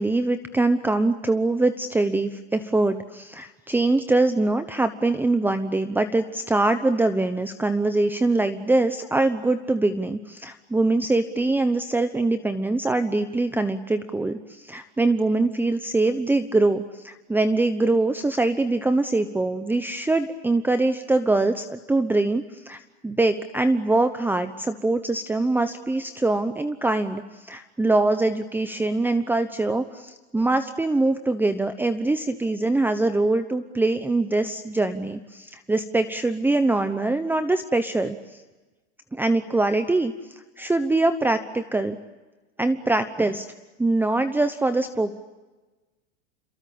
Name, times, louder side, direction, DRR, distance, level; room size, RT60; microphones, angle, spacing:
voice 1, 0.0-38.4 39.1-42.0 42.6-43.5 43.8-45.1, right 2 dB, 5° right, 10 dB, 1.0 m, -23 dB
28.5 x 23.0 x 8.7 m, 1.2 s
supercardioid pair, 125°, 34 cm